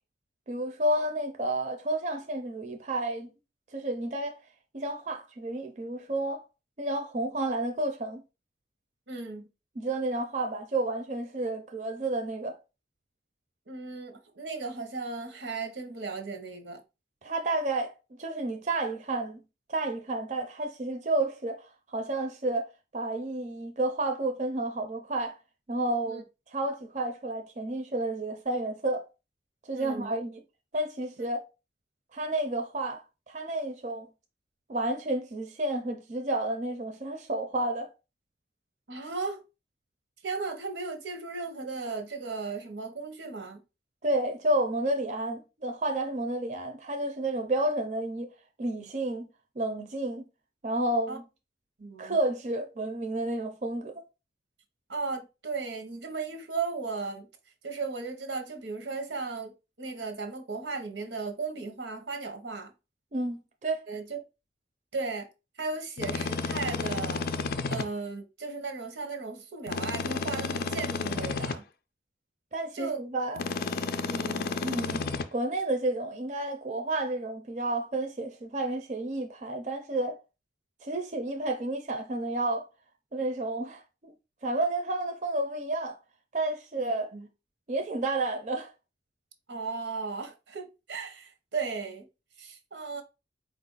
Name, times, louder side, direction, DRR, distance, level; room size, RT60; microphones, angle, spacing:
voice 1, 0.5-3.3 3.7-4.4 4.7-6.4 6.8-8.2 9.8-12.6 17.2-17.9 18.2-19.4 19.7-21.6 21.9-25.4 25.7-26.2 26.5-29.0 29.7-30.4 30.7-31.4 32.1-34.1 34.7-37.9 44.0-48.3 48.6-49.3 49.6-50.2 50.6-51.2 52.0-54.0 63.1-63.8 72.5-73.4 74.6-75.0 75.3-80.2 80.8-82.7 83.1-84.1 84.4-86.0 86.3-87.1 87.7-88.7, right 2 dB, 40° right, 0.5 m, -31 dB
voice 2, 9.1-9.5 13.7-16.8 26.1-26.2 29.7-30.1 31.2-31.3 38.9-39.4 40.2-43.6 51.1-51.2 51.8-52.2 54.9-57.3 57.6-59.5 59.8-62.7 63.9-64.2 64.9-65.3 65.6-67.2 67.7-71.6 72.7-73.0 74.1-74.5 86.8-87.3 89.5-92.1 92.4-93.0, right 4 dB, 85° right, 0.9 m, -36 dB
sound 1, 66.0-67.9 69.7-71.6 73.4-75.3, left 4 dB, 55° left, 0.4 m, -31 dB
4.3 x 2.5 x 3.9 m
head